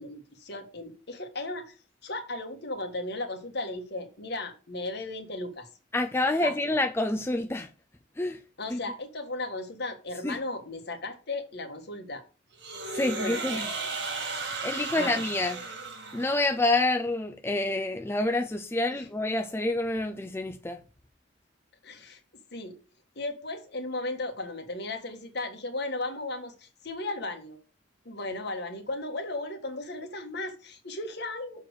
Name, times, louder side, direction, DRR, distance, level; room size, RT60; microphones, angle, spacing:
voice 1, 0.0-1.7 2.0-5.7 6.4-6.5 8.6-12.2 13.1-13.4 14.9-15.2 18.9-19.1 21.8-22.2 22.5-22.8 23.2-27.6 28.1-31.6, left 2 dB, 60° left, 1.7 m, -36 dB
voice 2, 5.9-7.7 8.2-8.4 8.7-8.8 10.2-10.4 12.9-13.7 14.6-15.6 16.1-20.8, left 2 dB, 15° left, 0.5 m, -28 dB
sound 1, 12.6-16.6, right 4 dB, 65° right, 1.8 m, -35 dB
6.6 x 4.4 x 6.5 m
head